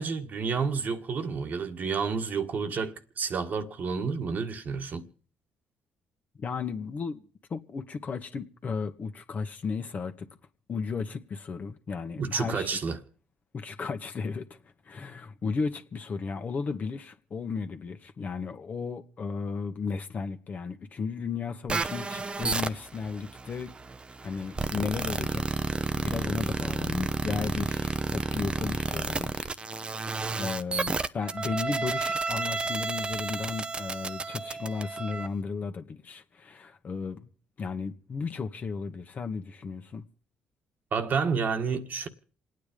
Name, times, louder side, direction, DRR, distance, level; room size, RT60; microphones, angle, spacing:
voice 1, 0.0-5.1 12.2-13.0 40.9-42.1, right 5 dB, 50° right, 1.6 m, -30 dB
voice 2, 6.4-7.2 7.5-10.3 10.7-12.8 13.5-14.5 14.8-23.7 24.2-25.6 25.9-37.3 37.6-40.0, left 5 dB, 45° left, 1.6 m, -34 dB
sound 1, 21.7-35.3, right 3 dB, 25° right, 0.9 m, -31 dB
28.0 x 9.4 x 5.2 m
supercardioid pair, 70°, 4 cm